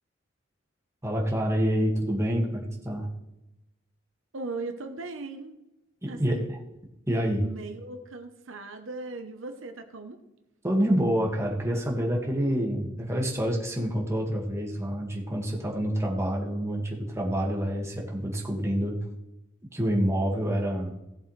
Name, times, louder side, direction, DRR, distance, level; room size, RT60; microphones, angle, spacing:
voice 1, 1.0-3.1 6.0-6.5 7.1-7.4 10.6-19.0 19.7-20.9, equal, 15° right, -1 dB, 2.1 m, -27 dB
voice 2, 4.3-5.5 6.1-6.6 7.4-10.2, right 3 dB, 75° right, 6 dB, 1.0 m, -38 dB
17.5 x 7.5 x 3.4 m, 0.93 s
head